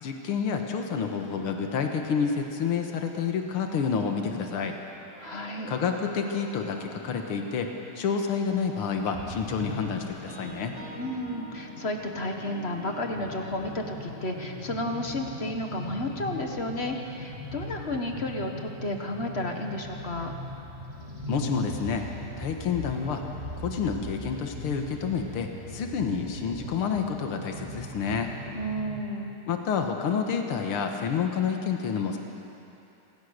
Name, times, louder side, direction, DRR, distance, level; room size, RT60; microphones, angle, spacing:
voice 1, 0.0-4.8 5.7-7.7 8.0-10.7 21.3-22.0 22.4-23.2 23.6-28.3 29.5-32.2, left 6 dB, 85° left, 3 dB, 2.2 m, -29 dB
sound 1, 5.1-8.6 9.0-15.5, right 1 dB, 65° right, 2.8 m, -48 dB
voice 2, 5.2-5.7 10.9-20.3 28.5-29.4, left 1 dB, 30° left, 3 dB, 1.6 m, -32 dB
sound 2, 9.1-29.0, equal, 15° right, 3.5 m, -40 dB
26.5 x 17.0 x 6.6 m, 3.0 s
omnidirectional pair, 2.3 m